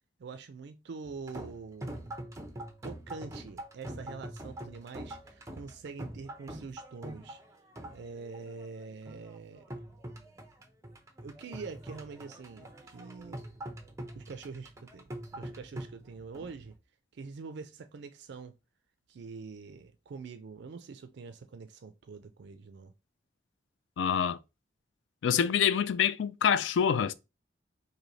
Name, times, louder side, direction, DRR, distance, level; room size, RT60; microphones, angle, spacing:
voice 1, 0.2-2.1 2.8-7.4 7.9-9.6 11.2-13.4 14.1-16.7 17.1-18.6 19.1-22.9, right 4 dB, 65° right, 0.4 m, -45 dB
sound 1, 1.0-16.7, right 1 dB, 15° right, 0.7 m, -44 dB
voice 2, 24.0-24.4 25.2-27.1, left 8 dB, 80° left, 0.3 m, -26 dB
3.2 x 2.7 x 3.9 m
head